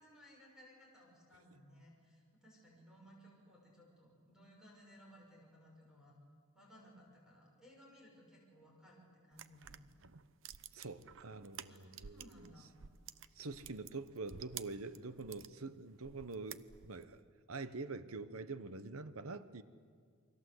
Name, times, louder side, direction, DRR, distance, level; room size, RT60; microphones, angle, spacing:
voice 1, 0.0-6.1 6.5-9.9 11.7-12.7, equal, 5° right, 6.3 m, -61 dB
sound 1, 9.3-12.5 12.7-15.5 16.0-17.1, right 9 dB, 65° right, 0.8 m, -51 dB
voice 2, 10.7-12.5 13.4-17.2 17.5-19.6, right 3 dB, 85° right, 1.1 m, -45 dB
29.0 x 23.5 x 8.1 m
head